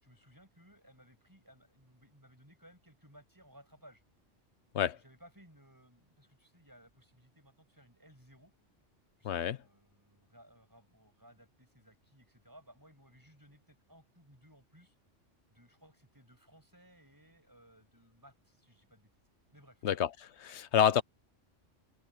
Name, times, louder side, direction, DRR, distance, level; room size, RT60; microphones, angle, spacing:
voice 1, 0.0-4.0 4.9-8.5 9.2-14.9 15.5-19.1 19.5-19.8, equal, 15° right, 6.0 m, -60 dB
voice 2, 9.2-9.6 19.8-20.1 20.4-21.0, left 9 dB, 65° left, 1.0 m, -28 dB
omnidirectional pair, 1.3 m